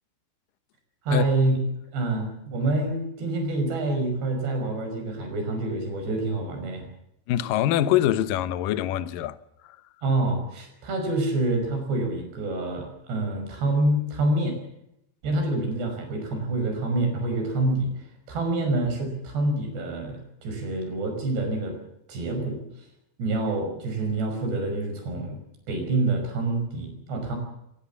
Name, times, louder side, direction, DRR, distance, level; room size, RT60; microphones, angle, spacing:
voice 1, 1.1-1.6 1.9-6.9 10.0-14.6 15.2-17.9 18.3-21.8 22.1-22.6 23.2-25.4 25.7-27.4, right 2 dB, 85° right, 7.8 m, -27 dB
voice 2, 7.3-9.4 9.6-9.8, left 12 dB, 70° left, 2.3 m, -24 dB
25.0 x 18.5 x 7.3 m
omnidirectional pair, 4.7 m